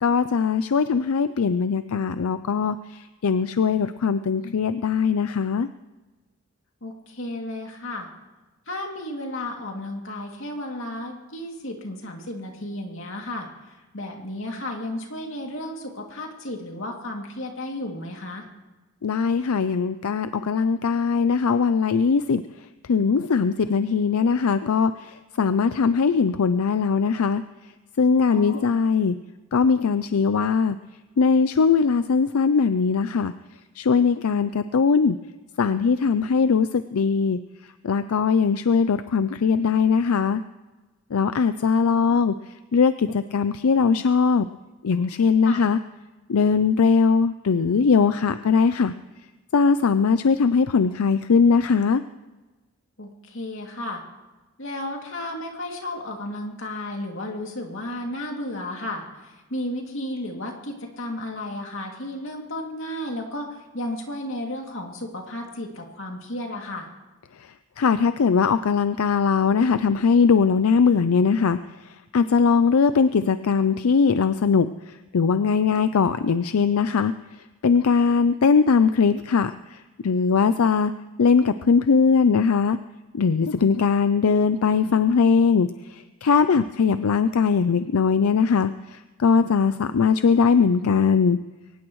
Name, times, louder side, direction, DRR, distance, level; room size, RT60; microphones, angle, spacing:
voice 1, 0.0-5.7 19.0-22.4 22.9-27.4 28.0-29.2 29.5-30.8 31.2-33.3 33.8-35.2 35.6-37.4 37.8-40.4 41.1-42.3 42.7-44.5 44.8-45.8 46.3-48.9 49.5-52.0 67.8-71.6 72.1-74.7 75.1-77.1 77.6-80.9 81.2-82.8 83.1-91.4, left 5 dB, 85° left, 12 dB, 0.5 m, -20 dB
voice 2, 6.8-8.1 8.7-13.5 13.9-18.5 28.3-28.7 45.4-45.6 53.0-54.0 54.6-63.5 63.7-66.9, left 1 dB, 65° left, 1 dB, 2.6 m, -33 dB
23.0 x 18.5 x 3.1 m, 1.2 s
head